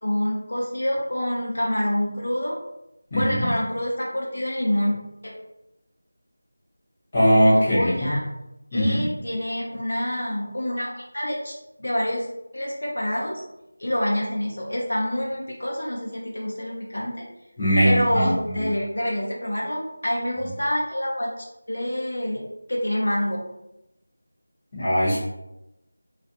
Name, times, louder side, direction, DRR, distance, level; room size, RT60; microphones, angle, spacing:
voice 1, 0.0-2.6 3.1-5.3 7.6-8.2 8.7-11.5 11.8-12.3 12.5-13.4 13.8-17.2 17.8-23.4, left 1 dB, 70° left, -3 dB, 0.6 m, -27 dB
voice 2, 3.1-3.5 7.1-8.1 8.7-9.1 17.6-18.6 24.7-25.2, equal, 20° left, -11 dB, 0.9 m, -20 dB
2.4 x 2.1 x 2.7 m, 0.89 s
figure-of-eight pair, 175°, 0 cm